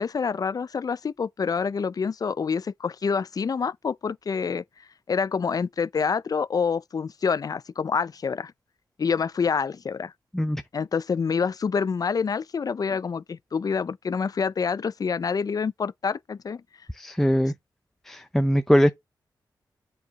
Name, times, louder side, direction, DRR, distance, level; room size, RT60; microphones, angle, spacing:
voice 1, 0.0-4.6 5.1-8.5 9.0-10.1 10.7-16.6, left 5 dB, 55° left, 0.5 m, -27 dB
voice 2, 16.9-17.5 18.1-18.9, equal, 5° left, 0.6 m, -21 dB
7.7 x 4.7 x 4.0 m
cardioid pair, 65°, 8 cm